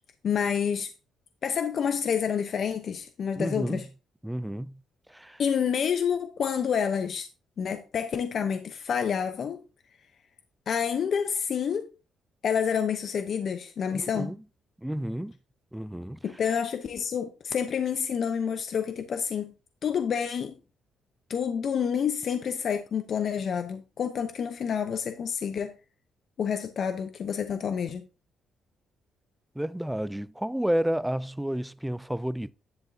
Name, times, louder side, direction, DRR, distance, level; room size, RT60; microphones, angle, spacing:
voice 1, 0.2-0.9 1.4-3.9 5.4-7.3 7.6-9.6 10.7-11.9 12.4-14.3 16.2-19.5 19.8-20.6 21.3-25.7 26.4-28.0, left 7 dB, 55° left, 0.7 m, -28 dB
voice 2, 3.4-3.8 4.2-4.8 5.1-5.4 13.9-14.4 14.8-15.3 15.7-16.2 29.6-32.5, equal, 5° right, 0.3 m, -31 dB
10.5 x 8.0 x 2.7 m
cardioid pair, 90°, 0 cm